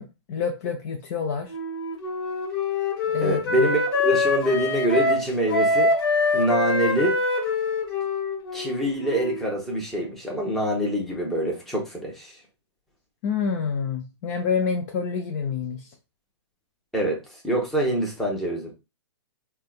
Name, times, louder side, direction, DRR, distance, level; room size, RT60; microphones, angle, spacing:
voice 1, 0.0-1.5 3.1-3.7 13.2-15.8, left 6 dB, 40° left, 0.5 m, -28 dB
Wind instrument woodwind instrument, 1.5-9.5, left 3 dB, 55° left, 1.1 m, -25 dB
voice 2, 3.2-5.9 6.3-7.1 8.5-12.3 16.9-17.2 17.4-18.7, right 1 dB, ahead, 0.8 m, -25 dB
3.4 x 2.2 x 2.4 m
hypercardioid pair, 135°, 15 cm